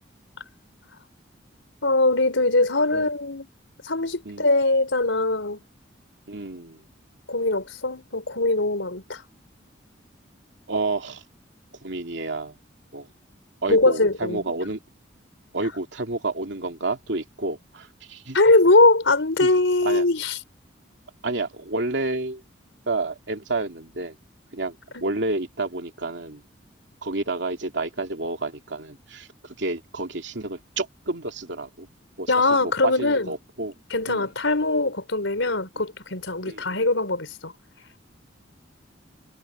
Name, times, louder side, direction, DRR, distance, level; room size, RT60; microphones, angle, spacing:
voice 1, 1.8-3.5 3.8-5.6 7.3-9.2 13.7-14.4 18.3-20.4 24.9-25.0 32.3-33.3 33.9-37.5, left 2 dB, 80° left, 4.3 m, -21 dB
voice 2, 6.3-6.9 10.7-11.2 11.8-12.6 12.9-13.1 13.6-14.8 15.5-18.4 19.4-19.5 19.8-20.0 21.2-22.4 22.9-24.2 24.5-24.8 25.0-26.4 27.0-31.9 32.2-32.3 32.6-33.7 34.1-34.2 36.4-36.7, right 2 dB, 70° right, 2.6 m, -30 dB
head